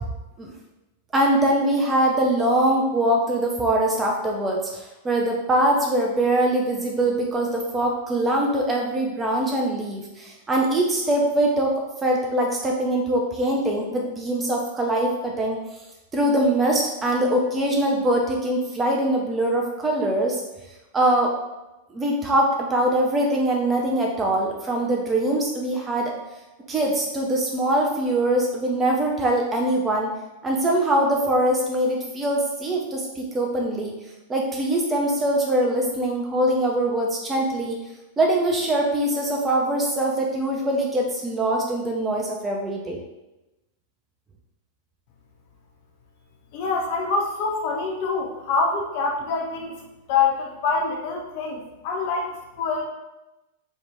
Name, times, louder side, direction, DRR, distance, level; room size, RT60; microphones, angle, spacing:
voice 1, 1.1-11.7 12.0-15.6 16.1-20.4 20.9-21.3 21.9-26.1 26.7-30.1 30.4-33.9 34.3-37.8 38.2-43.0, right 1 dB, 20° right, -1 dB, 0.4 m, -23 dB
voice 2, 46.5-49.8 50.1-52.8, left 4 dB, 50° left, 0 dB, 0.5 m, -25 dB
2.7 x 2.1 x 3.2 m, 1.0 s
figure-of-eight pair, 95°, 0 cm